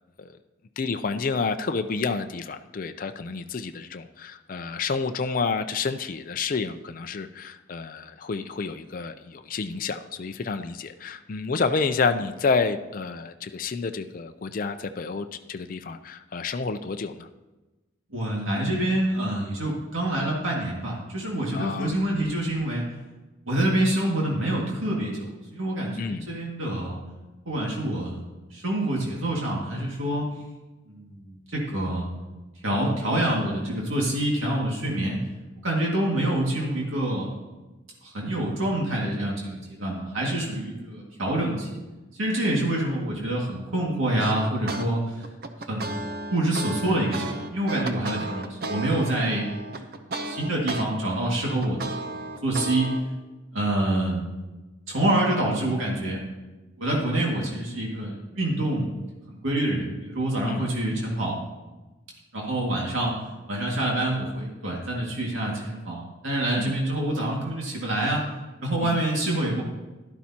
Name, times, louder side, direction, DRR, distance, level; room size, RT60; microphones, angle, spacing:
voice 1, 0.8-17.3 21.5-22.0 26.0-26.3 48.0-48.3 60.4-60.7 66.6-66.8 68.8-69.0, left 4 dB, 45° left, 8 dB, 0.4 m, -29 dB
voice 2, 18.1-22.8 23.5-27.0 27.5-28.2 28.5-30.3 30.9-32.1 32.6-35.2 35.6-37.4 38.0-41.8 42.2-45.3 45.7-49.5 50.0-53.0 53.5-54.3 54.9-56.2 56.8-58.9 59.3-61.4 62.3-63.1 63.5-68.2 68.6-69.6, right 1 dB, 85° right, -3 dB, 2.1 m, -26 dB
sound 1, 44.2-44.9 45.2-50.8 51.2-53.0, right 2 dB, 50° right, 0.7 m, -34 dB
11.5 x 11.5 x 2.9 m, 1.1 s
head